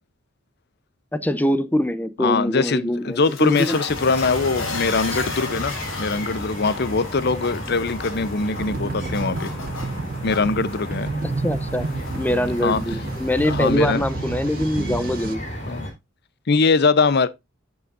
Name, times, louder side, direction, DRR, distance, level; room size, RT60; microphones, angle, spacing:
voice 1, 1.1-3.8 11.2-11.9 12.1-15.4, left 1 dB, 10° left, 0.6 m, -23 dB
voice 2, 2.2-9.5 10.2-11.1 12.6-12.8 13.4-14.0 15.7-15.9 16.5-17.3, left 4 dB, 55° left, 0.7 m, -22 dB
sound 1, 2.9-13.7, left 3 dB, 80° left, 3.6 m, -36 dB
sound 2, 3.9-15.9, equal, 35° left, 3.8 m, -33 dB
sound 3, 8.5-15.4, right 3 dB, 45° right, 0.4 m, -30 dB
12.0 x 7.0 x 2.5 m
head